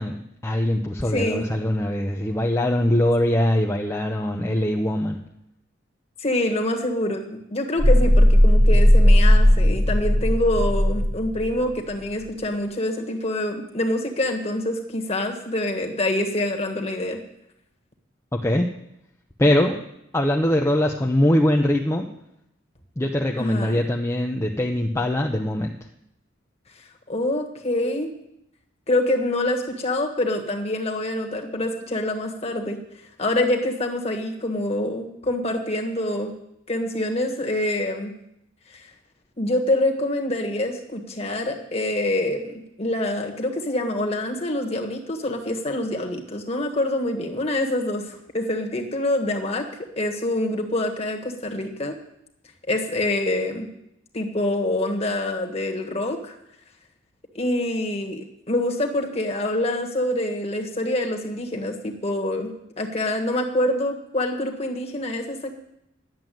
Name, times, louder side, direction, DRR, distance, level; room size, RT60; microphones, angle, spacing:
voice 1, 0.0-5.2 18.3-18.7 19.4-19.8 20.1-22.1 23.0-25.7, left 1 dB, 15° left, 0 dB, 0.7 m, -22 dB
voice 2, 1.1-1.5 6.2-17.2 23.4-23.8 27.1-28.1 28.9-32.8 33.2-36.3 36.7-38.1 38.7-38.9 39.4-52.0 52.7-53.7 54.1-56.4 57.3-65.6, left 1 dB, 30° left, 2 dB, 1.5 m, -26 dB
sound 1, 7.8-11.5, equal, 75° right, 2.3 m, -16 dB
11.0 x 7.6 x 9.2 m, 0.80 s
head